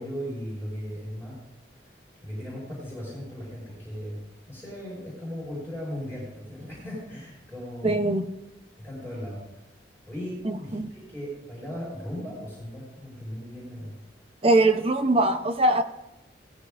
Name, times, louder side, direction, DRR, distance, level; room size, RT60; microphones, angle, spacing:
voice 1, 0.0-1.4 2.2-4.2 4.5-7.9 8.8-9.6 10.1-13.9, equal, 10° right, 5.2 m, -37 dB
voice 2, 7.8-8.3 10.4-10.9 14.4-15.8, right 2 dB, 30° right, 0.7 m, -22 dB
17.5 x 14.5 x 2.5 m
head